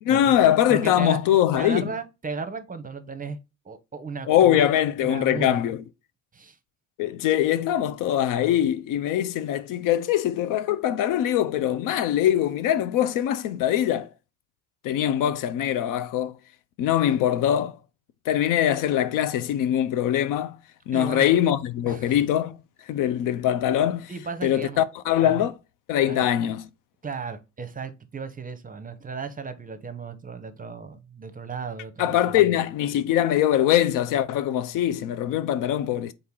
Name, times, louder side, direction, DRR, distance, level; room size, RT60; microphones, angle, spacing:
voice 1, 0.0-1.9 4.3-5.8 7.0-14.1 14.8-16.4 16.8-17.8 18.3-20.6 20.9-22.6 22.9-24.1 24.4-25.6 25.9-26.7 32.0-36.1, left 11 dB, 60° left, 0.5 m, -22 dB
voice 2, 0.7-1.2 1.5-3.4 3.6-4.7 5.0-5.6 6.3-6.6 20.9-21.4 21.8-22.2 24.1-24.8 25.2-25.4 26.1-26.3 27.0-32.6, right 5 dB, 25° right, 0.7 m, -35 dB
3.9 x 2.8 x 3.7 m
hypercardioid pair, 60°, 36 cm